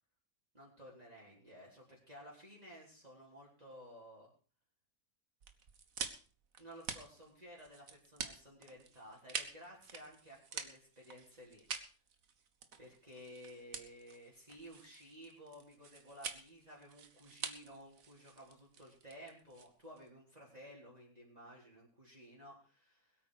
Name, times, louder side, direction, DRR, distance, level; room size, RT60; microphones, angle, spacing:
voice 1, 0.5-4.3 6.6-11.6 12.8-23.2, equal, 25° right, -5 dB, 4.1 m, -55 dB
sound 1, 5.4-20.1, right 6 dB, 65° right, 1.7 m, -47 dB
21.5 x 8.9 x 5.0 m, 0.37 s
omnidirectional pair, 1.6 m